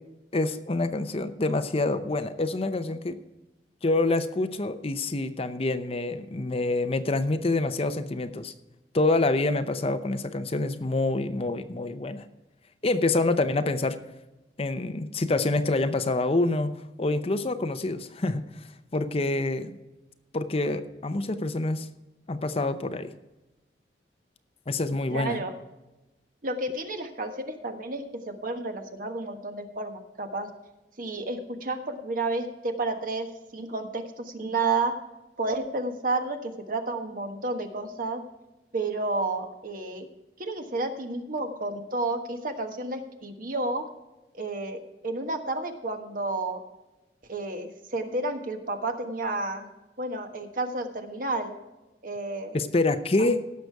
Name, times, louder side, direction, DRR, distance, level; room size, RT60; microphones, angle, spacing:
voice 1, 0.3-3.2 3.8-8.5 8.9-12.2 12.8-14.0 14.6-19.8 20.3-21.9 22.3-23.1 24.7-25.4 52.5-53.4, left 2 dB, 35° left, 10 dB, 0.7 m, -27 dB
voice 2, 25.1-25.5 26.4-30.5 31.0-33.3 33.5-34.9 35.4-38.2 38.7-40.1 40.4-43.9 44.4-46.6 47.3-49.7 50.0-51.5 52.0-52.6 53.2-53.3, right 2 dB, 50° right, 6 dB, 1.4 m, -31 dB
17.0 x 6.7 x 4.7 m, 1.0 s
head